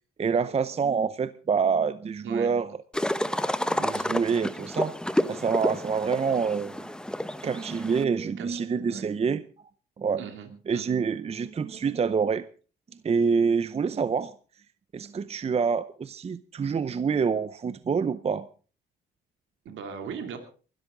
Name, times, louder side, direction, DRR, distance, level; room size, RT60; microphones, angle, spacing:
voice 1, 0.2-2.8 3.7-5.0 5.3-6.9 7.4-9.4 10.0-10.2 10.7-12.5 13.0-14.3 14.9-18.5, right 5 dB, 30° right, 0.6 m, -26 dB
sound 1, 2.9-8.0, left 1 dB, 5° left, 0.9 m, -30 dB
voice 2, 8.4-9.0 10.2-10.9 19.6-20.4, right 7 dB, 75° right, 2.8 m, -39 dB
22.5 x 12.5 x 3.8 m
cardioid pair, 90°, 20 cm